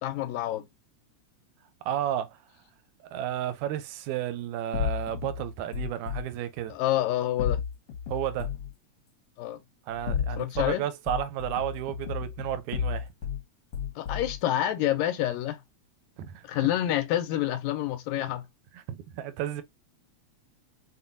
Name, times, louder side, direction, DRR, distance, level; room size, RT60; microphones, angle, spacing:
voice 1, 0.0-0.7 6.7-7.6 9.4-9.6 10.4-10.8 14.0-15.6 16.5-18.5, left 13 dB, 80° left, 1.8 m, -28 dB
voice 2, 1.8-2.4 3.1-6.8 8.1-8.5 9.9-13.1 16.2-16.7 18.7-19.6, right 11 dB, 85° right, 1.9 m, -32 dB
sound 1, 4.7-6.2 7.4-8.7 9.9-10.7 11.1-13.4 13.7-14.4, left 8 dB, 65° left, 1.7 m, -32 dB
5.5 x 2.2 x 2.5 m
omnidirectional pair, 3.3 m